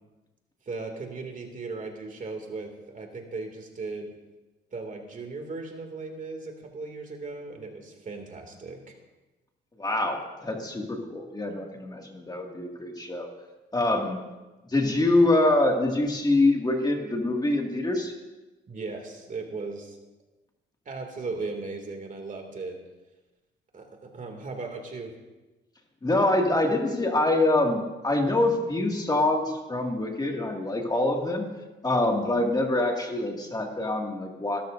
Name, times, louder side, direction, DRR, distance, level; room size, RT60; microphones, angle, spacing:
voice 1, 0.7-4.1 4.7-8.9 18.7-20.0 20.9-22.8 23.7-25.1, right 3 dB, 40° right, 3 dB, 2.5 m, -37 dB
voice 2, 9.8-13.3 13.7-14.2 14.7-18.1 26.0-31.5 31.8-34.6, left 2 dB, 20° left, 1 dB, 2.2 m, -25 dB
22.5 x 13.0 x 2.7 m, 1.1 s
cardioid pair, 90°, 20 cm